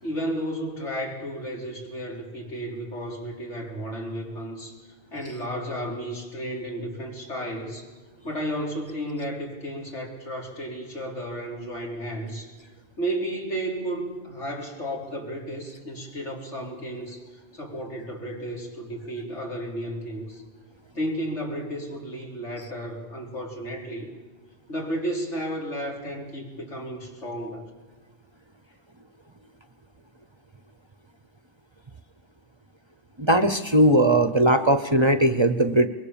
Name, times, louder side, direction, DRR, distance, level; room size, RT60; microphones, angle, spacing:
voice 1, 0.0-4.8 5.1-7.9 8.2-12.5 13.0-17.2 17.5-20.4 20.9-24.1 24.7-27.7, equal, 90° left, -1 dB, 4.3 m, -33 dB
voice 2, 33.2-35.9, right 1 dB, 30° right, 10 dB, 0.8 m, -19 dB
24.5 x 22.5 x 7.1 m, 1.3 s
omnidirectional pair, 1.2 m